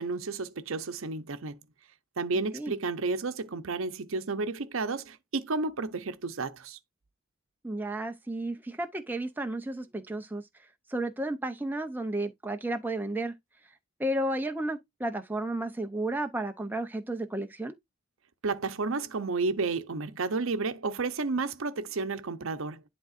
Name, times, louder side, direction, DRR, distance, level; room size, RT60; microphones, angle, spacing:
voice 1, 0.0-1.6 2.2-6.8 18.4-22.9, right 3 dB, 70° right, 0.7 m, -31 dB
voice 2, 7.6-13.3 13.6-13.7 14.0-17.7, right 1 dB, 10° right, 0.5 m, -33 dB
11.0 x 3.6 x 2.4 m
head